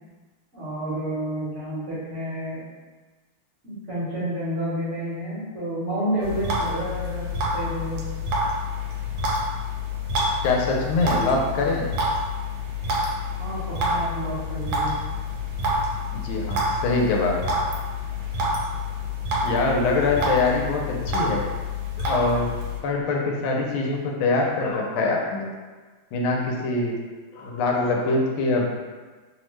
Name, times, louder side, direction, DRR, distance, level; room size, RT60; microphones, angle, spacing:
voice 1, 0.5-2.6 3.6-8.0 13.4-14.9, right 1 dB, 45° right, -11 dB, 1.1 m, -30 dB
sound 1, 6.2-22.8, left 1 dB, 80° right, 1.4 m, -27 dB
voice 2, 10.4-11.8 16.1-17.3 19.4-21.4 22.0-22.5 22.8-25.5 26.1-26.9 27.3-28.7, left 3 dB, 85° left, 0 dB, 1.4 m, -24 dB
3.4 x 2.1 x 3.1 m, 1.4 s
omnidirectional pair, 2.2 m